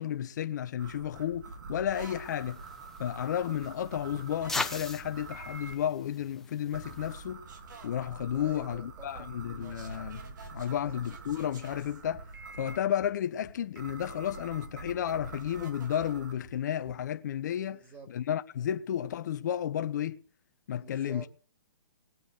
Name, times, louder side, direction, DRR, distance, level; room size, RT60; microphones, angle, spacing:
voice 1, 0.0-2.6 3.0-7.4 7.8-10.3 10.5-12.3 12.6-17.8 18.1-20.2 20.7-21.3, left 10 dB, 60° left, 1.0 m, -32 dB
sound 1, 0.8-5.7 6.7-12.8 13.8-16.3, right 4 dB, 65° right, 3.3 m, -46 dB
sound 2, 2.1-7.3, left 2 dB, 5° left, 1.1 m, -41 dB
voice 2, 8.3-9.3 9.6-9.9 10.7-10.9 17.7-18.1 20.8-21.3, right 4 dB, 20° right, 3.6 m, -50 dB
sound 3, 8.7-17.1, right 3 dB, 35° right, 3.2 m, -54 dB
20.0 x 7.1 x 6.6 m
hypercardioid pair, 140°, 11 cm